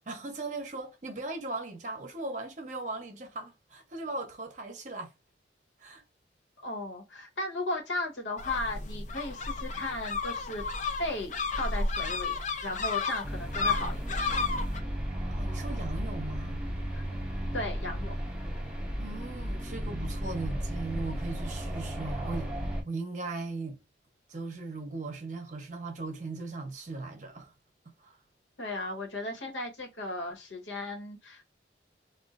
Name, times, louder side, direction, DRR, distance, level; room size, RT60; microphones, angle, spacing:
voice 1, 0.1-5.1 5.8-6.0 15.3-16.6 19.0-22.5 22.9-23.8 24.3-27.5 28.0-28.2, right 3 dB, 40° right, 0.7 m, -38 dB
voice 2, 6.6-10.6 11.0-14.2 16.9-17.0 17.5-18.1 28.6-31.4, left 2 dB, 85° left, 1.1 m, -36 dB
sound 1, 8.4-14.8, left 4 dB, 40° left, 0.5 m, -32 dB
sound 2, 13.2-22.8, equal, 5° right, 0.7 m, -34 dB
4.2 x 2.3 x 2.4 m
head